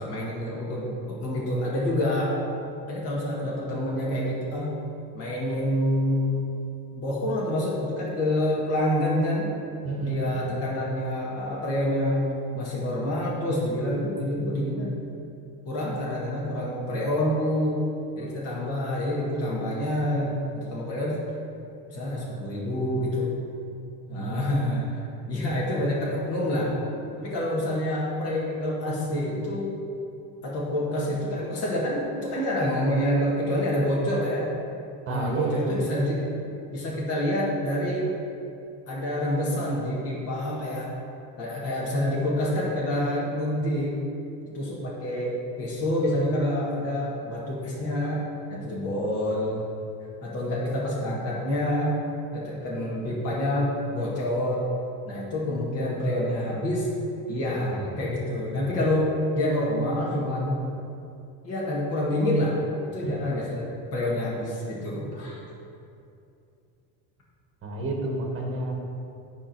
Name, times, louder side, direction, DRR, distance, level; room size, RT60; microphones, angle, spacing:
voice 1, 0.0-2.4 2.9-4.7 5.1-6.4 6.9-9.5 10.0-12.3 12.5-14.9 15.7-17.8 18.2-21.2 21.9-23.3 24.1-25.0 25.3-26.8 27.2-29.7 30.4-34.5 35.1-36.2 36.7-38.1 38.9-40.9 41.4-44.1 44.5-48.2 48.5-49.7 50.2-52.0 52.3-54.6 55.0-56.9 57.3-60.6 61.4-62.6 62.8-65.4, left 1 dB, 40° left, -6 dB, 1.7 m, -27 dB
voice 2, 9.8-10.6 24.1-24.5 35.1-36.1 63.0-63.1 67.6-68.7, right 2 dB, 35° right, 0 dB, 1.5 m, -30 dB
9.9 x 3.7 x 5.9 m, 2.6 s
cardioid pair, 140°, 38 cm